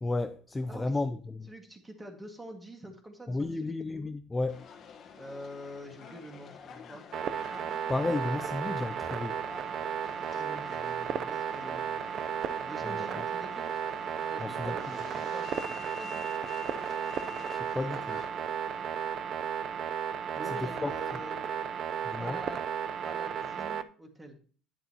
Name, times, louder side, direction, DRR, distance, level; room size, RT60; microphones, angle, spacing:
voice 1, 0.0-1.5 3.3-4.7 7.9-9.4 12.8-13.2 14.4-14.8 17.5-18.2 20.6-20.9 22.1-22.4, left 2 dB, 15° left, 0.4 m, -33 dB
voice 2, 0.7-1.0 1.5-3.7 5.2-7.0 10.3-11.9 12.6-13.7 14.3-16.3 20.4-21.5 22.2-22.6 23.0-24.4, equal, 10° right, 1.8 m, -45 dB
Subway metro underground, 4.5-19.1, left 5 dB, 45° left, 1.1 m, -49 dB
sound 1, 7.1-23.8, right 8 dB, 45° right, 0.5 m, -34 dB
9.5 x 7.9 x 2.9 m
cardioid pair, 130°, 0 cm